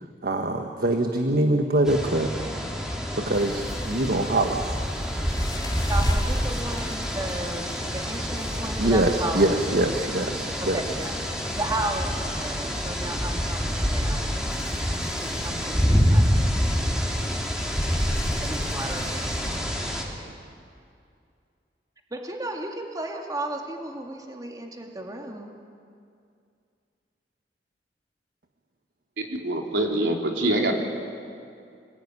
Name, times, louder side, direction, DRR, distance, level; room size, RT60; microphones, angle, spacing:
voice 1, 0.2-2.3 3.1-4.7 8.8-10.9, right 1 dB, 60° right, 4 dB, 1.5 m, -24 dB
sound 1, 1.8-20.0, equal, 5° right, 3.7 m, -27 dB
sound 2, 3.3-19.6, equal, 25° left, 2.8 m, -39 dB
voice 2, 5.9-7.7 7.9-9.9 10.6-11.2 11.6-14.3 14.9-16.5 18.4-19.3 22.1-25.5, right 2 dB, 20° right, 1 dB, 2.4 m, -34 dB
voice 3, 29.3-30.7, right 1 dB, 90° right, 1 dB, 3.9 m, -24 dB
28.5 x 20.0 x 9.8 m, 2.4 s
head